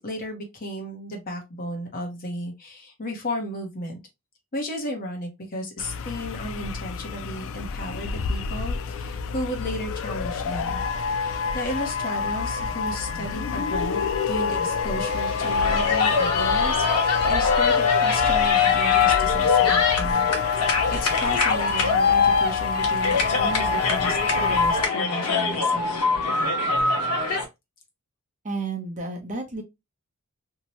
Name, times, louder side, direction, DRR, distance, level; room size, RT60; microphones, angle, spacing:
voice 1, 0.0-4.0 4.5-10.8 11.2-20.3 20.7-26.0, equal, 40° left, 0.8 m, -34 dB
sound 1, 5.8-24.8, left 6 dB, 60° left, 0.3 m, -25 dB
sound 2, 14.8-20.1, right 1 dB, 75° right, 0.7 m, -37 dB
sound 3, 15.4-27.4, left 4 dB, 90° left, 0.8 m, -24 dB
voice 2, 28.4-29.6, right 3 dB, 35° right, 0.7 m, -31 dB
2.7 x 2.1 x 2.9 m
head